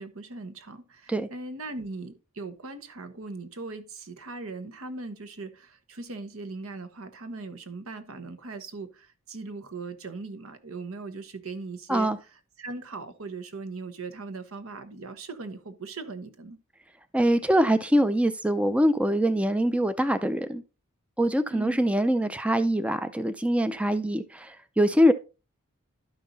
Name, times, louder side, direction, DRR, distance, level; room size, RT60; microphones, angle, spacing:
voice 1, 0.0-12.1 12.6-16.6 21.5-21.8, right 3 dB, 70° right, 1.2 m, -39 dB
voice 2, 17.1-20.6 21.2-25.1, equal, 5° right, 0.4 m, -23 dB
11.5 x 5.7 x 4.0 m
head